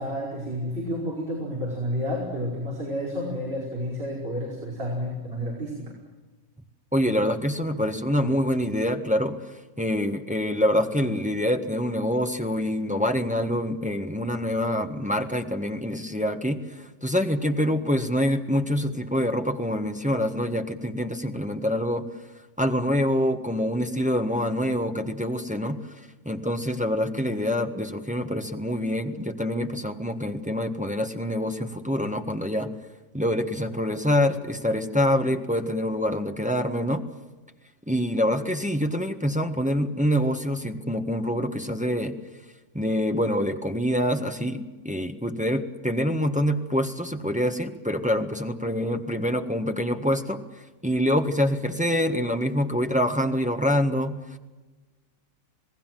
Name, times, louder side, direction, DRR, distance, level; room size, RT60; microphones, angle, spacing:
voice 1, 0.0-5.9, equal, 40° right, -4 dB, 5.7 m, -30 dB
voice 2, 6.9-9.4 9.8-22.1 22.6-25.8 26.2-32.7 33.1-37.0 37.9-42.2 42.7-50.4 50.8-54.4, equal, 5° right, 5 dB, 1.4 m, -26 dB
28.0 x 19.0 x 7.7 m, 1.2 s
omnidirectional pair, 1.6 m